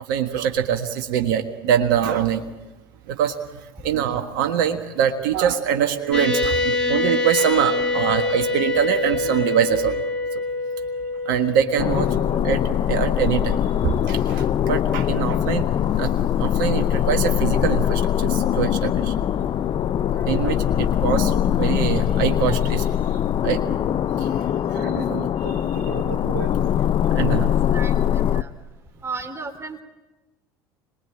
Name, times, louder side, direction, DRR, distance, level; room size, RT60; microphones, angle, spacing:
voice 1, 0.1-2.4 3.1-3.3 3.8-10.0 11.3-12.6 12.9-13.6 13.8-15.6 16.0-16.1 16.4-19.1 20.3-22.8 23.4-23.6 24.7-26.5 27.1-27.5, right 9 dB, 70° right, 5 dB, 1.5 m, -24 dB
sound 1, 6.1-14.2, left 3 dB, 10° left, 6.3 m, -26 dB
sound 2, 11.8-28.4, left 10 dB, 45° left, 0.8 m, -22 dB
voice 2, 27.7-28.5 29.0-29.8, right 4 dB, 20° right, 6 dB, 3.4 m, -34 dB
26.0 x 20.5 x 9.0 m, 1.1 s
hypercardioid pair, 70°, 12 cm